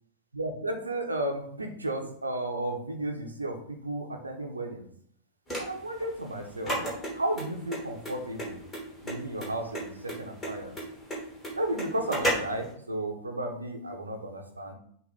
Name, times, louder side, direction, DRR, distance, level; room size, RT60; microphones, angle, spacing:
voice 1, 0.3-4.9 5.6-6.8 7.1-8.6 9.0-10.8 11.5-14.7, right 1 dB, 80° right, 3 dB, 1.0 m, -33 dB
sound 1, 5.5-12.7, equal, 10° left, 3.1 m, -33 dB
8.1 x 2.8 x 5.5 m, 0.64 s
figure-of-eight pair, 90°, 0 cm